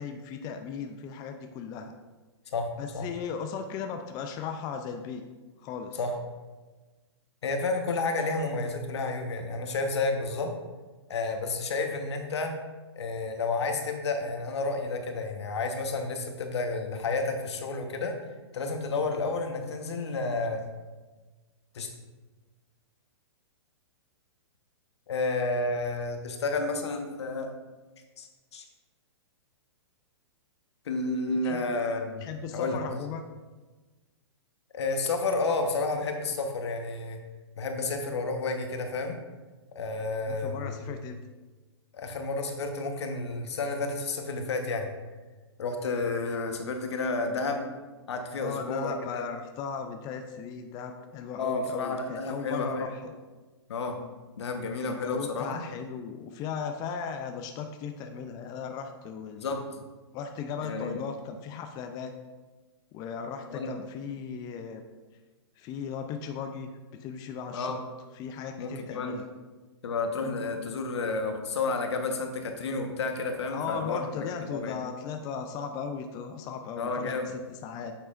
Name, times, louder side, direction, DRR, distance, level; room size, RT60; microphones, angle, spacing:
voice 1, 0.0-1.9 2.8-5.2 5.6-6.0 31.4-31.6 32.2-33.2 40.3-41.2 48.4-53.1 54.9-59.5 60.1-62.1 62.9-64.8 65.6-66.7 67.0-67.8 68.1-69.3 73.5-77.9, left 6 dB, 25° left, 5 dB, 0.4 m, -37 dB
voice 2, 7.4-10.5 11.1-12.5 13.0-18.2 18.5-20.6 21.7-21.9 25.1-27.5 28.2-28.3 28.5-28.6 30.8-32.2 32.5-33.0 34.7-37.2 37.6-39.2 39.7-40.9 41.9-44.9 45.6-47.7 48.1-49.2 51.4-52.8 53.7-54.0 54.4-55.6 59.3-59.6 60.6-61.0 63.5-63.7 67.5-67.8 68.6-69.2 69.8-74.8 76.8-77.3, left 3 dB, 70° left, 4 dB, 1.1 m, -31 dB
8.8 x 6.1 x 2.5 m, 1.3 s
hypercardioid pair, 125°, 14 cm